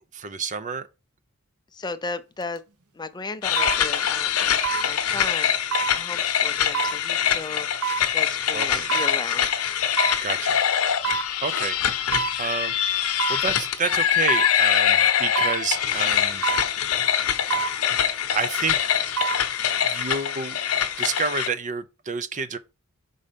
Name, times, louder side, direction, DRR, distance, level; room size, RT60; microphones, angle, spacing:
voice 1, 0.1-0.9 8.5-8.9 10.2-10.6 11.4-11.8 12.4-16.4 18.3-18.8 19.8-22.6, right 5 dB, 35° right, 0.5 m, -29 dB
voice 2, 1.7-2.6 2.9-5.6 5.9-7.7 8.1-9.5, left 3 dB, 20° left, 0.5 m, -35 dB
sound 1, 2.4-2.6 3.6-3.8 4.6-4.9 5.7-6.0 6.7-7.0 7.8-8.1 8.9-9.1 10.0-10.2 11.0-11.3 12.1-12.4 13.2-13.5 14.3-14.5 15.4-15.6 16.4-16.7 17.5-17.8 18.9-19.4 19.8-19.9, right 7 dB, 80° right, 0.9 m, -27 dB
sound 2, 3.4-21.5, left 9 dB, 85° left, 0.8 m, -24 dB
5.4 x 3.8 x 5.1 m
head